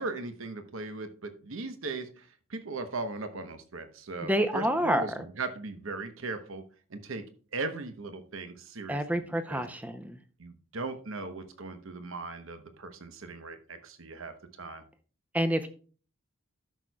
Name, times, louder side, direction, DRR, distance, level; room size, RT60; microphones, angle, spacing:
voice 1, 0.0-6.6 6.9-7.2 7.5-9.2 9.5-9.6 10.4-14.8, right 3 dB, 75° right, 8 dB, 0.9 m, -38 dB
voice 2, 4.2-5.0 8.9-10.2 15.3-15.7, equal, 5° right, 9 dB, 0.6 m, -28 dB
13.5 x 6.3 x 2.3 m, 0.39 s
head